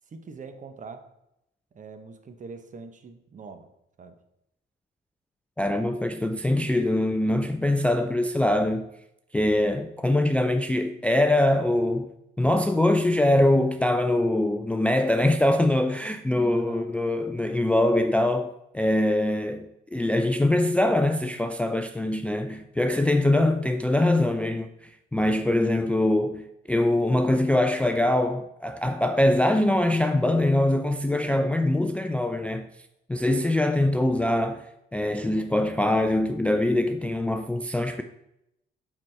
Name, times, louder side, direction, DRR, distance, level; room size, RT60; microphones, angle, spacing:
voice 1, 0.1-1.1 1.7-3.7 4.0-4.1 16.5-16.9, right 4 dB, 40° right, 0.8 m, -43 dB
voice 2, 5.6-8.9 9.3-12.1 12.4-32.7 33.1-34.7 34.9-38.0, left 1 dB, 5° left, 0.3 m, -23 dB
8.5 x 4.0 x 3.3 m
cardioid pair, 90°, 20 cm